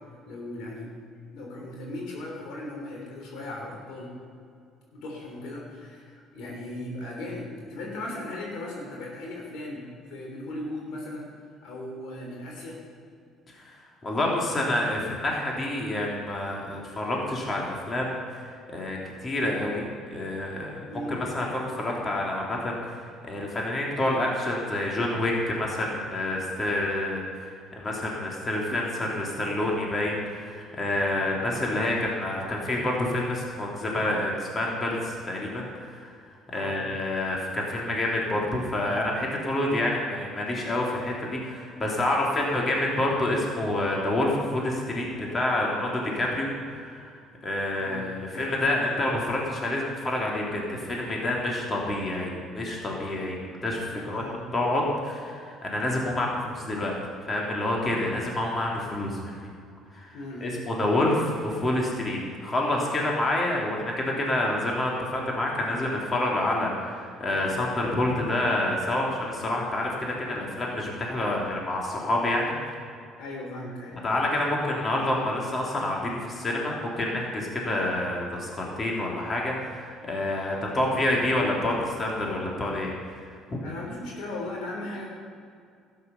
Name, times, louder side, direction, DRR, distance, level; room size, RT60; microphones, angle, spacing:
voice 1, 0.3-0.9 1.3-4.1 4.9-11.3 11.6-12.8 20.9-21.2 31.1-31.4 36.5-36.9 46.0-46.1 47.8-48.6 53.9-54.5 60.1-60.6 73.2-74.0 83.6-85.1, left 1 dB, 70° left, -2 dB, 3.1 m, -37 dB
voice 2, 13.5-20.8 21.1-23.0 23.3-36.1 36.5-47.1 47.4-53.4 53.6-54.2 54.5-57.0 57.3-59.5 59.9-60.1 60.4-72.5 74.0-82.9 83.5-83.6, left 1 dB, 35° left, -2 dB, 3.0 m, -28 dB
12.5 x 9.5 x 5.7 m, 2.2 s
hypercardioid pair, 65°, 0 cm